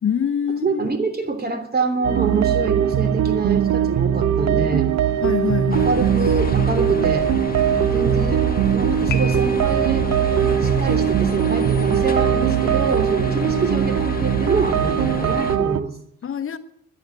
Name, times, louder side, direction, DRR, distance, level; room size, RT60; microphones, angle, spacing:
voice 1, 0.0-0.8 5.2-6.0 16.2-16.6, left 8 dB, 45° left, 1.1 m, -24 dB
voice 2, 0.6-4.9 5.8-7.3 7.9-10.1 10.6-15.9, right 4 dB, 30° right, 3.2 m, -25 dB
sound 1, 2.0-15.8, right 9 dB, 65° right, 0.9 m, -20 dB
sound 2, 5.7-15.6, left 5 dB, 30° left, 1.8 m, -30 dB
Piano, 9.1-10.1, left 7 dB, 75° left, 1.4 m, -33 dB
12.5 x 10.0 x 9.2 m
cardioid pair, 90°, 30 cm